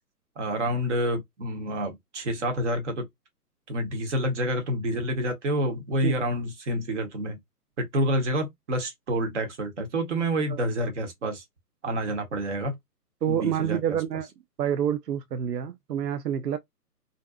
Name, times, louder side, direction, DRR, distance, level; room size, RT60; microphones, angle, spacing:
voice 1, 0.4-3.1 3.7-7.4 7.8-11.4 11.8-12.8 13.3-14.0, right 1 dB, 45° right, 1.0 m, -28 dB
voice 2, 13.2-14.3 14.6-16.6, right 9 dB, 90° right, 0.5 m, -28 dB
2.6 x 2.2 x 2.3 m
hypercardioid pair, 150°, 47 cm